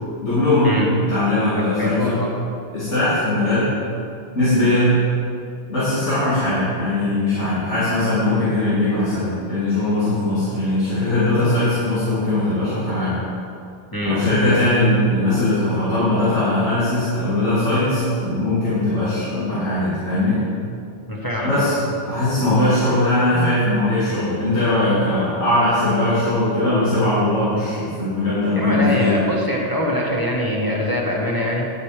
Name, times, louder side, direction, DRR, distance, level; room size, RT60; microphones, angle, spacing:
voice 1, 0.2-2.2 2.7-3.7 4.4-5.0 5.7-13.2 14.0-20.4 21.4-21.7 22.1-29.2, left 1 dB, 75° left, -12 dB, 2.7 m, -20 dB
voice 2, 1.8-2.3 13.9-14.2 21.1-21.7 28.5-31.7, left 1 dB, 20° left, -3 dB, 1.4 m, -23 dB
10.0 x 8.1 x 4.9 m, 2.5 s
omnidirectional pair, 1.2 m